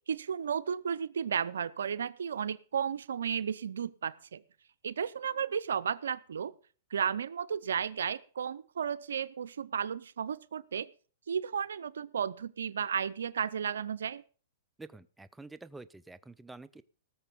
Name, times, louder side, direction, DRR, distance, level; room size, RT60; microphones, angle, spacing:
voice 1, 0.1-4.4 4.8-6.5 6.9-10.9 11.3-14.2, right 7 dB, 85° right, 17 dB, 0.6 m, -33 dB
voice 2, 14.8-16.8, right 3 dB, 5° right, 15 dB, 0.5 m, -48 dB
18.0 x 6.8 x 5.3 m, 0.40 s
hypercardioid pair, 130°, 0 cm